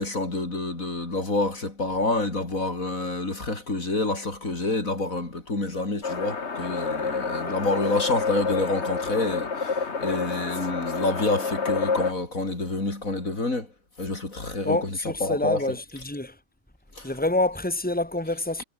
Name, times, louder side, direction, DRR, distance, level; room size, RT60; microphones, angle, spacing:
voice 1, 0.0-13.7 14.0-14.9 15.2-15.6 17.0-17.1, left 2 dB, 70° left, 5.2 m, -28 dB
sound 1, 6.0-12.1, left 5 dB, 50° left, 2.1 m, -29 dB
voice 2, 14.6-16.3 17.0-18.6, left 2 dB, 5° left, 3.2 m, -27 dB
omnidirectional pair, 1.5 m